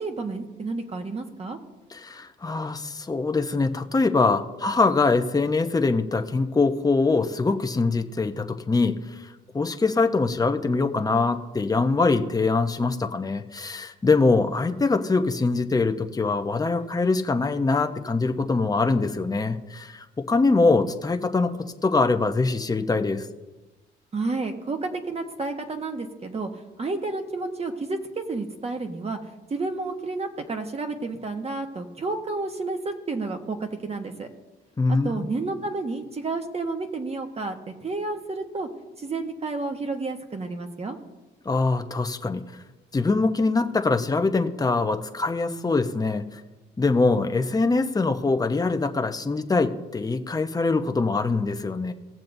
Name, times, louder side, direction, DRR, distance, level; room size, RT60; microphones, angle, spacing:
voice 1, 0.0-1.6 24.1-29.2 29.5-34.3 34.9-38.7 39.0-41.0, right 3 dB, 30° right, 5 dB, 1.2 m, -31 dB
voice 2, 1.9-9.3 9.5-21.5 21.8-23.3 34.8-35.3 41.4-42.4 42.9-46.4 46.8-51.9, left 3 dB, 20° left, 6 dB, 0.8 m, -23 dB
18.0 x 7.3 x 2.7 m, 1.1 s
cardioid pair, 90°, 20 cm